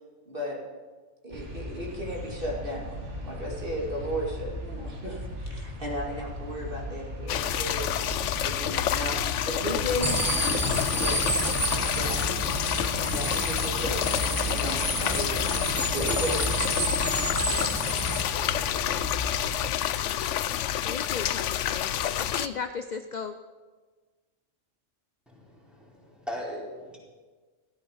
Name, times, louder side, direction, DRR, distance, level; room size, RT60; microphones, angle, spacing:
voice 1, 0.3-0.6 1.2-2.9 3.2-7.9 8.4-11.3 11.9-12.3 13.0-15.5 15.9-16.7, equal, 50° right, -2 dB, 2.8 m, -35 dB
sound 1, 1.3-19.7, equal, 75° right, 2.4 m, -37 dB
expiration of pond, 7.3-22.5, left 11 dB, 80° left, 0.9 m, -28 dB
sound 2, 10.0-18.2, right 2 dB, 15° right, 1.2 m, -31 dB
voice 2, 20.8-23.4, left 5 dB, 45° left, 9 dB, 0.6 m, -36 dB
voice 3, 25.3-27.0, equal, ahead, -4 dB, 4.2 m, -39 dB
16.0 x 13.5 x 5.6 m, 1.4 s
omnidirectional pair, 1.2 m